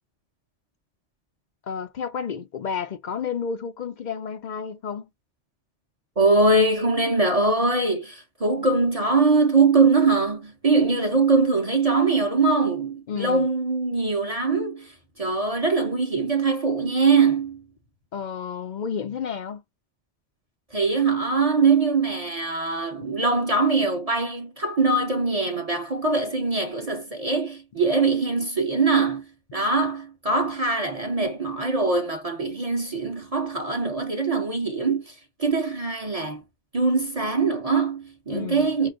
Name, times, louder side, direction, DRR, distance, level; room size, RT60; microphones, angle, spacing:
voice 1, 1.7-5.1 13.1-13.5 18.1-19.6 23.0-23.1 38.3-38.7, left 6 dB, 60° left, 0.5 m, -31 dB
voice 2, 6.2-17.6 20.7-29.2 29.5-36.4 36.7-38.9, right 3 dB, 35° right, 0.9 m, -22 dB
4.7 x 2.5 x 2.4 m
omnidirectional pair, 1.2 m